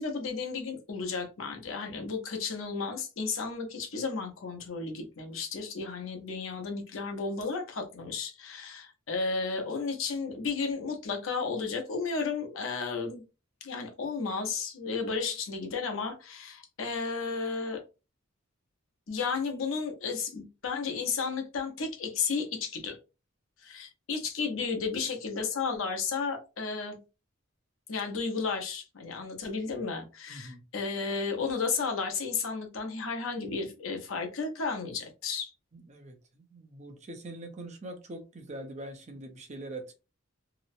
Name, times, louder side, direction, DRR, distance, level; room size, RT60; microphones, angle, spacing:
voice 1, 0.0-13.2 13.6-17.8 19.1-23.0 23.6-27.0 27.9-35.5, left 4 dB, 85° left, 0.8 m, -33 dB
voice 2, 30.3-30.6 35.7-39.9, right 1 dB, 35° right, 0.6 m, -43 dB
2.9 x 2.0 x 2.6 m
head